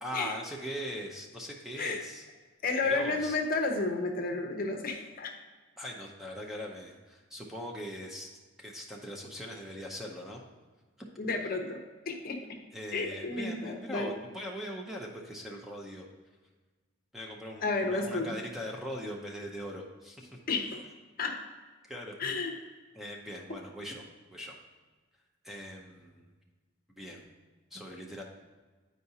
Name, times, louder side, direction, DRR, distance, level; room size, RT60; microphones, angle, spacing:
voice 1, 0.0-2.3 2.8-3.4 5.8-8.3 8.6-10.4 12.7-16.1 17.1-20.3 21.9-22.1 22.9-24.0 24.3-24.5 25.4-26.2 27.0-27.3 27.7-28.2, equal, ahead, -1 dB, 0.6 m, -41 dB
voice 2, 2.6-5.3 11.2-11.8 12.1-12.6 12.9-14.1 17.6-18.3 20.5-20.8 21.2-21.4 22.2-22.5, left 3 dB, 45° left, 4 dB, 0.7 m, -31 dB
9.2 x 4.7 x 2.8 m, 1.4 s
head